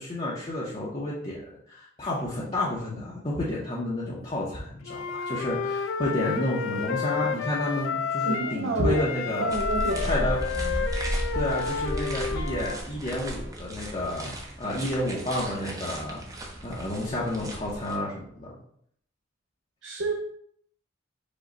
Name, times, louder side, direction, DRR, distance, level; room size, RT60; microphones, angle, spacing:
voice 1, 0.0-1.4 1.7-9.5 10.0-10.4 11.3-14.3 14.6-16.2 16.6-18.5, left 1 dB, 30° left, -6 dB, 0.7 m, -30 dB
Wind instrument woodwind instrument, 4.9-8.6 8.9-12.8, left 5 dB, 85° left, 0.4 m, -31 dB
voice 2, 8.3-9.0 9.4-10.1 10.6-10.9 19.8-20.1, right 2 dB, 65° right, 1 dB, 0.5 m, -29 dB
sound 1, 9.5-18.0, right 1 dB, 15° right, 0.6 m, -34 dB
5.0 x 2.2 x 3.8 m, 0.68 s
head